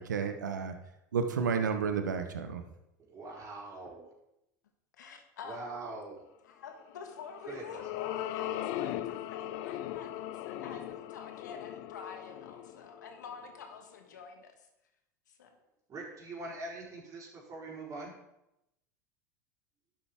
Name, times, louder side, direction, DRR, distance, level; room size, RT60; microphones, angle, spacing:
voice 1, 0.1-0.7 1.1-2.6, right 6 dB, 85° right, 1.0 m, -31 dB
voice 2, 3.1-4.1 5.4-6.2 7.4-7.8 15.9-18.1, right 2 dB, 35° right, 4.2 m, -43 dB
voice 3, 5.0-5.6 6.5-14.5 15.4-15.5, left 6 dB, 80° left, 1.5 m, -47 dB
sound 1, 7.1-13.7, left 12 dB, 60° left, 0.5 m, -39 dB
11.5 x 7.6 x 3.6 m
hypercardioid pair, 80°, 10 cm